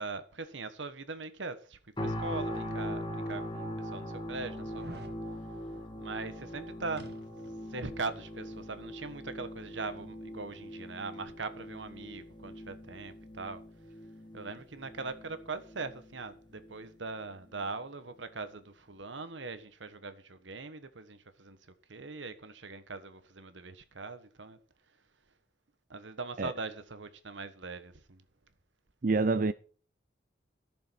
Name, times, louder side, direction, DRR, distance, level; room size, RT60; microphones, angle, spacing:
voice 1, 0.0-5.1 6.0-7.1 7.7-13.6 14.3-24.6 25.9-28.2, right 3 dB, 85° right, 1.4 m, -41 dB
sound 1, 2.0-17.0 17.5-17.6, equal, 25° left, 1.8 m, -41 dB
sound 2, 2.6-2.7 3.4-3.5 4.6-5.2 7.0-7.6 7.9-8.0, right 2 dB, 60° right, 1.8 m, -48 dB
voice 2, 29.0-29.5, right 3 dB, 45° right, 0.4 m, -26 dB
14.0 x 7.0 x 5.9 m
head